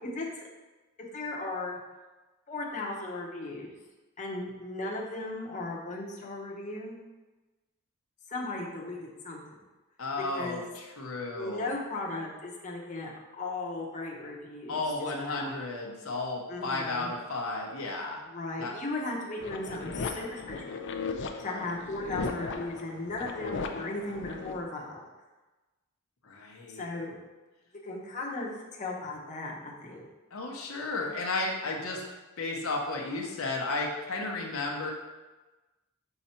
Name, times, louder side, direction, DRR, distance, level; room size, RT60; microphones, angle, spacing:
voice 1, 0.0-0.5 1.1-1.8 2.5-3.7 4.2-7.0 8.3-9.6 10.3-10.7 11.3-14.8 15.3-15.5 16.5-17.1 18.3-20.8 21.4-25.0 26.7-27.2 27.8-30.0, left 2 dB, 35° left, -3 dB, 0.9 m, -36 dB
voice 2, 10.0-11.7 14.7-18.2 18.6-18.7 21.4-21.6 26.2-26.9 30.3-32.0 32.4-34.9, left 2 dB, 70° left, -1 dB, 0.9 m, -33 dB
sound 1, 19.4-24.6, left 4 dB, 55° left, 0.5 m, -37 dB
5.7 x 3.9 x 4.3 m, 1.2 s
head